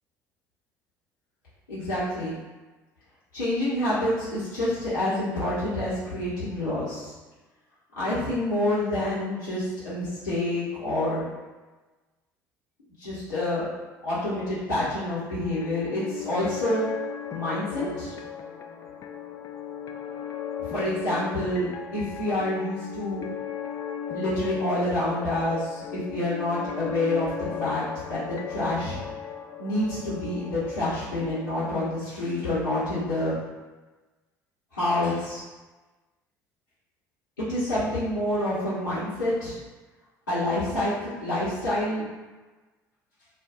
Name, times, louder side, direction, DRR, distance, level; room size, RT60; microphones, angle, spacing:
voice 1, 1.7-2.4 3.3-7.1 8.0-11.2 13.0-13.7 14.0-16.8 17.3-18.1 20.6-23.3 24.1-27.8 28.1-29.0 29.6-33.4 34.7-35.4 37.4-39.6 40.3-42.0, left 1 dB, 80° left, -13 dB, 0.9 m, -27 dB
sound 1, 15.4-31.9, left 8 dB, 35° left, 0.3 m, -37 dB
2.5 x 2.2 x 3.6 m, 1.2 s
figure-of-eight pair, 60°, 10 cm